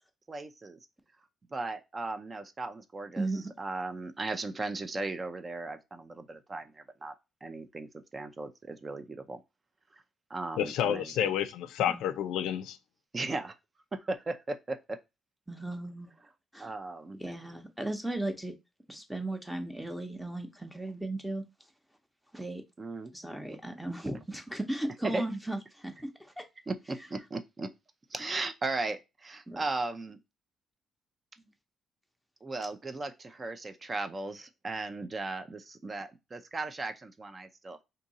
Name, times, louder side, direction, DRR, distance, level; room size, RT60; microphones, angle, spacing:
voice 1, 0.3-0.8 1.5-3.3 3.6-7.1 7.4-9.4 10.3-11.3 13.1-13.6 13.9-15.0 16.6-17.2 22.8-23.1 25.1-25.2 26.7-27.7 28.1-30.2 32.4-37.8, right 3 dB, 30° right, 0.5 m, -37 dB
voice 2, 3.2-3.5 11.8-12.0 15.5-16.1 16.5-16.7 17.2-18.5 18.9-21.4 22.3-22.6 23.1-26.4 29.5-29.6 31.4-31.5, right 2 dB, 5° right, 0.8 m, -36 dB
voice 3, 10.6-12.8, left 10 dB, 90° left, 0.4 m, -30 dB
2.7 x 2.6 x 4.0 m
cardioid pair, 90°, 0 cm